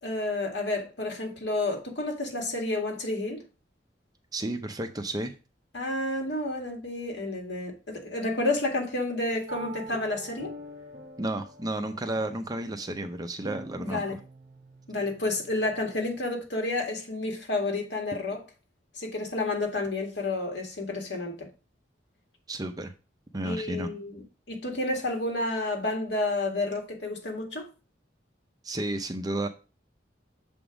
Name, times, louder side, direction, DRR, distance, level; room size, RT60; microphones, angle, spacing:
voice 1, 0.0-3.4 5.7-10.5 13.8-14.2 14.9-18.4 19.0-21.5 23.4-27.6, left 2 dB, 70° left, 1.9 m, -30 dB
voice 2, 4.3-5.3 11.2-14.0 22.5-22.9 23.3-23.9 28.6-29.5, right 1 dB, 20° right, 0.6 m, -32 dB
sound 1, 9.5-16.2, right 2 dB, 65° right, 1.1 m, -45 dB
7.0 x 3.6 x 4.9 m
head